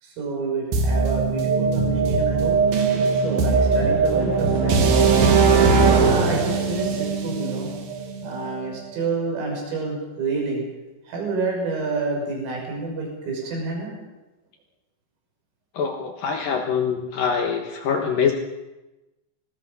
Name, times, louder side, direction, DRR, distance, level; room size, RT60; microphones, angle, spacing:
voice 1, 0.0-2.6 3.1-5.0 5.9-7.7 8.2-10.6 11.1-13.9, right 3 dB, 75° right, -1 dB, 8.8 m, -29 dB
sound 1, 0.7-8.6, right 4 dB, 55° right, 3.3 m, -20 dB
voice 2, 15.7-18.3, left 6 dB, 65° left, 3 dB, 2.3 m, -24 dB
26.0 x 19.5 x 5.5 m, 1.1 s
omnidirectional pair, 5.9 m